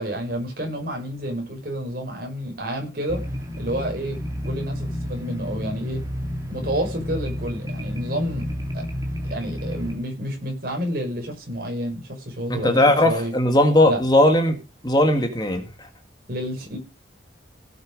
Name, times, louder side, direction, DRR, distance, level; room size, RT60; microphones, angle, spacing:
voice 1, 0.0-3.2 3.6-4.2 4.4-6.0 6.5-8.8 9.2-13.3 13.9-14.0 16.3-16.8, equal, 50° right, 5.5 m, -29 dB
sound 1, 3.1-10.0, equal, 20° right, 2.6 m, -30 dB
voice 2, 12.5-14.6 14.8-15.9, left 1 dB, 20° left, 1.8 m, -18 dB
17.0 x 7.1 x 5.1 m
head